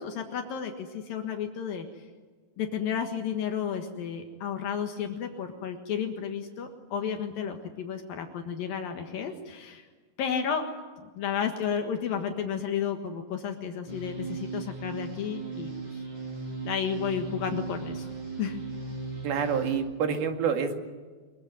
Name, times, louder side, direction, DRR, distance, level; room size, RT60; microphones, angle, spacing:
voice 1, 0.0-2.0 2.6-9.9 10.2-10.7 11.0-16.0 16.6-18.1 18.4-18.6, left 7 dB, 70° left, 5 dB, 3.3 m, -32 dB
sound 1, 13.9-19.8, right 4 dB, 55° right, 9.6 m, -37 dB
voice 2, 19.2-20.7, right 6 dB, 85° right, 6 dB, 4.1 m, -27 dB
24.0 x 22.5 x 9.5 m, 1.4 s
omnidirectional pair, 4.2 m